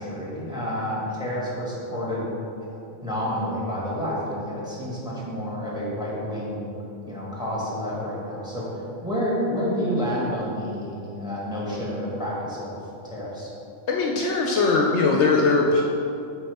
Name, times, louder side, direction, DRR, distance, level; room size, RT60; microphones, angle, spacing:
voice 1, 0.0-2.3 2.7-6.7 7.1-12.7 13.0-13.5, equal, 5° right, -6 dB, 1.4 m, -29 dB
voice 2, 13.9-15.8, left 3 dB, 70° left, -1 dB, 0.8 m, -20 dB
7.5 x 4.7 x 3.5 m, 2.7 s
omnidirectional pair, 1.3 m